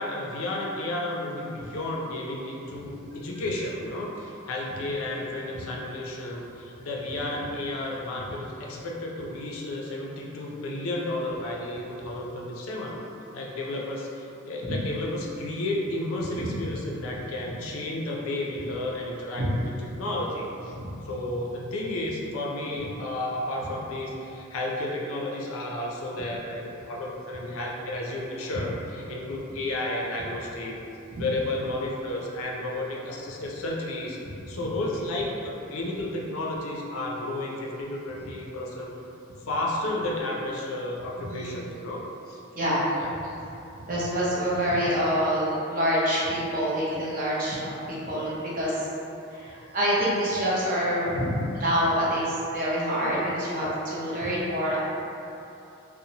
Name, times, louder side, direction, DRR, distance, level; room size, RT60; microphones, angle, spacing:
voice 1, 0.0-13.0 13.3-19.5 19.9-20.7 21.0-30.7 31.2-34.2 34.5-38.9 39.5-42.4 43.0-43.1, left 1 dB, 75° left, -2 dB, 0.4 m, -32 dB
voice 2, 41.2-41.6 42.5-43.0 43.9-48.9 49.3-54.8, equal, 40° right, -7 dB, 0.6 m, -26 dB
2.7 x 2.0 x 2.7 m, 2.8 s
head